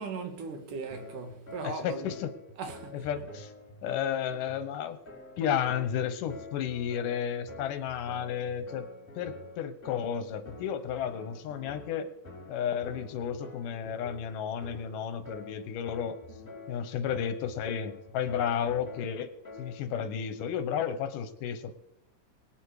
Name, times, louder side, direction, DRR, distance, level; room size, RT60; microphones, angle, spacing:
voice 1, 0.0-2.2 2.6-2.9, right 4 dB, 75° right, 3.2 m, -38 dB
sound 1, 0.9-20.0, left 2 dB, 15° left, 5.4 m, -48 dB
voice 2, 1.6-2.3 2.9-3.5 3.8-5.0 5.4-8.9 9.2-12.1 12.5-16.2 16.7-19.3 19.6-21.8, left 8 dB, 80° left, 2.6 m, -32 dB
23.0 x 8.5 x 4.8 m
omnidirectional pair, 3.7 m